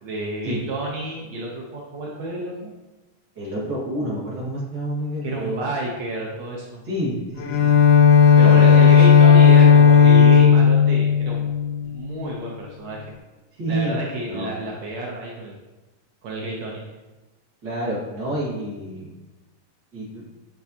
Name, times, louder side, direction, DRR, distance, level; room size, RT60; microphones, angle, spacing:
voice 1, 0.0-2.7 5.2-6.8 8.4-11.5 11.8-13.0 13.7-15.6 16.2-16.8, right 1 dB, 75° right, -2 dB, 1.6 m, -30 dB
voice 2, 3.4-5.7 6.9-7.8 8.4-8.9 13.5-13.9 14.3-14.5 17.6-19.1 19.9-20.3, right 1 dB, 40° right, -8 dB, 1.9 m, -28 dB
Bowed string instrument, 7.4-12.3, left 6 dB, 80° left, 1.8 m, -13 dB
9.4 x 4.6 x 2.8 m, 1.1 s
omnidirectional pair, 3.9 m